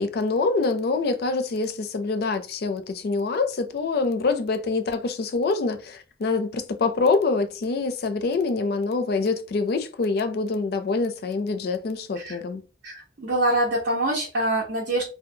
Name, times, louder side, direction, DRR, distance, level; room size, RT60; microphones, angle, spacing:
voice 1, 0.0-12.6, left 3 dB, 60° left, 0.4 m, -25 dB
voice 2, 12.8-15.0, right 1 dB, 70° right, 0.6 m, -25 dB
2.6 x 2.2 x 2.7 m
head